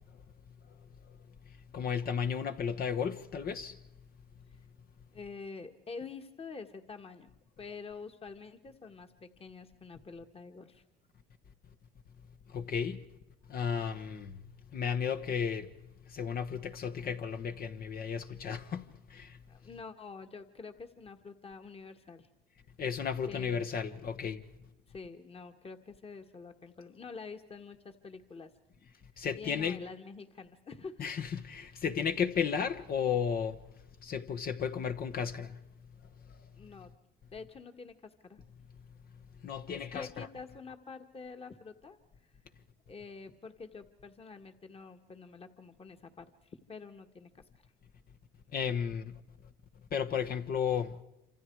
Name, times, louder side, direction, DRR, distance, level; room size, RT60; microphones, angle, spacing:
voice 1, 1.7-3.8 12.5-13.0 13.5-14.4 14.7-15.7 16.1-19.4 22.8-24.4 29.2-29.8 31.0-33.6 34.0-35.6 36.3-36.4 39.4-40.3 48.5-49.2 49.9-51.0, left 7 dB, 50° left, 1.2 m, -34 dB
voice 2, 5.1-10.8 19.5-22.3 23.3-23.7 24.9-28.5 29.4-31.1 31.5-31.6 36.6-36.9 37.3-38.4 39.8-42.0 42.9-47.4, left 4 dB, 30° left, 1.8 m, -47 dB
27.5 x 26.5 x 4.8 m
supercardioid pair, 85°, 19 cm